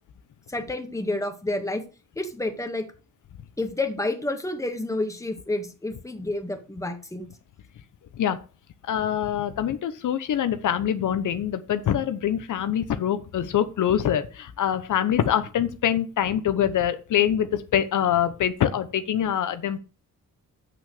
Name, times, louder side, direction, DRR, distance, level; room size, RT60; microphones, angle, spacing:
voice 1, 0.5-1.8 2.2-2.9 3.6-7.3, left 2 dB, 10° left, 5 dB, 1.8 m, -29 dB
voice 2, 8.8-19.8, left 10 dB, 75° left, 11 dB, 1.0 m, -24 dB
8.2 x 6.2 x 6.5 m, 0.34 s
cardioid pair, 120°, 31 cm